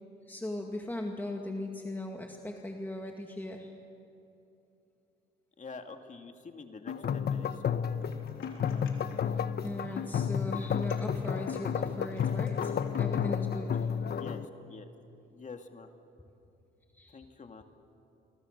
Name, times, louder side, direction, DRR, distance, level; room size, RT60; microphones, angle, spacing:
voice 1, 0.3-3.8 9.1-13.9 16.9-17.3, left 1 dB, 10° left, 2 dB, 2.1 m, -39 dB
voice 2, 5.6-7.5 14.1-14.9 15.3-15.9 17.1-17.6, left 4 dB, 40° left, 5 dB, 2.3 m, -46 dB
sound 1, 6.9-14.4, left 7 dB, 55° left, 1.1 m, -31 dB
sound 2, 8.0-9.3 9.6-10.2 10.5-13.0, left 4 dB, 85° left, 3.9 m, -52 dB
29.5 x 24.0 x 6.7 m, 2.8 s
cardioid pair, 90°, 20 cm